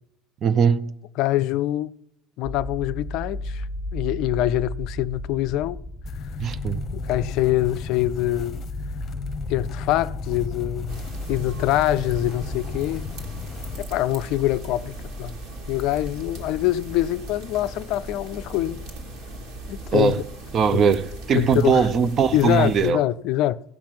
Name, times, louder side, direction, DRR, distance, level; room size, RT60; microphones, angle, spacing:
voice 1, 0.4-0.9 6.4-6.8 19.9-20.2 20.5-23.0, right 6 dB, 40° right, 0.6 m, -20 dB
voice 2, 1.2-1.9 2.4-5.8 7.0-8.6 9.5-13.1 13.8-15.3 15.7-18.8 19.7-20.2 20.7-20.8 21.3-21.9 22.3-23.6, left 14 dB, 60° left, 0.4 m, -24 dB
sound 1, 2.4-19.9, left 1 dB, 20° right, 1.5 m, -36 dB
sound 2, 6.0-13.8, left 7 dB, 40° left, 0.8 m, -36 dB
sound 3, 10.9-22.9, right 1 dB, 60° right, 2.4 m, -39 dB
15.0 x 5.8 x 7.2 m
hypercardioid pair, 70°, 0 cm